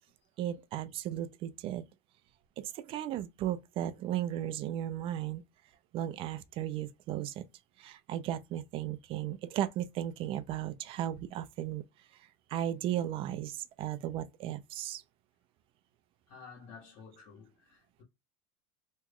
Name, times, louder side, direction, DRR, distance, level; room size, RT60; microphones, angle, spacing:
voice 1, 0.4-1.8 2.6-5.4 5.9-7.4 7.8-11.8 12.5-15.0, right 12 dB, 45° right, 0.5 m, -35 dB
voice 2, 16.3-18.0, left 5 dB, 60° left, 1.5 m, -52 dB
3.1 x 2.3 x 3.5 m
supercardioid pair, 120°, 13 cm